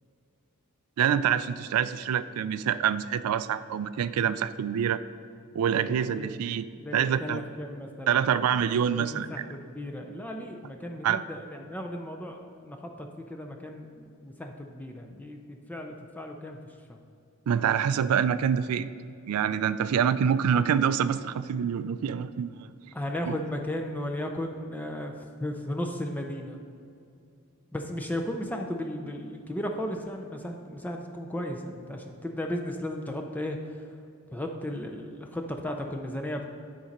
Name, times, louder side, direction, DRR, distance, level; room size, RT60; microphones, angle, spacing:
voice 1, 1.0-5.0 5.5-6.7 6.9-7.4 8.1-9.5 11.0-11.2 17.5-18.9 19.3-22.7 23.3-23.4, right 8 dB, 75° right, 14 dB, 0.3 m, -26 dB
voice 2, 5.8-6.3 6.8-8.6 9.0-17.0 22.9-26.6 27.7-34.0 34.3-36.5, left 1 dB, 5° left, 3 dB, 0.4 m, -35 dB
10.0 x 4.1 x 5.2 m, 2.5 s
head